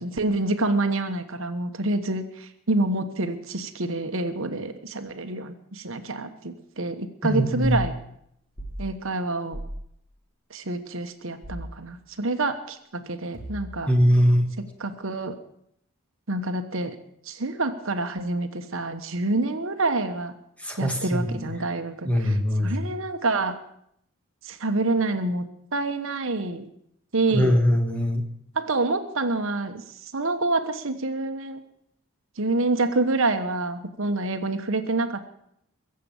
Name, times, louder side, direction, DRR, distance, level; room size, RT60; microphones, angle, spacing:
voice 1, 0.0-7.9 8.8-9.6 10.5-13.9 14.6-15.4 16.3-17.0 17.2-20.3 20.8-22.4 22.6-23.5 24.4-25.4 25.7-26.7 27.1-27.6 28.5-31.6 32.4-35.2, right 2 dB, 65° right, 8 dB, 1.2 m, -27 dB
voice 2, 7.2-7.9 13.9-14.5 20.6-21.5 22.0-22.9 27.3-28.2, equal, 5° left, 4 dB, 1.5 m, -22 dB
sound 1, 8.6-8.8 9.5-9.8 11.4-11.7 13.3-13.9, right 1 dB, 40° left, 5.8 m, -36 dB
22.5 x 7.6 x 7.1 m, 0.73 s
head